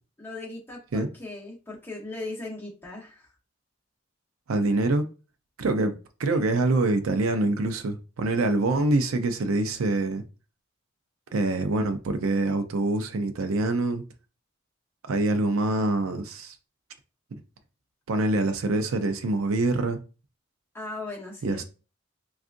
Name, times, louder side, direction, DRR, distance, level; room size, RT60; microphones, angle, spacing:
voice 1, 0.2-3.3 6.3-6.4 20.7-21.6, left 2 dB, 10° left, 0.9 m, -38 dB
voice 2, 4.5-5.1 5.6-5.9 6.2-10.2 11.3-14.0 15.0-16.6 17.3-17.4 18.1-20.0 21.4-21.6, right 2 dB, 85° right, 0.5 m, -25 dB
3.6 x 2.4 x 2.5 m
head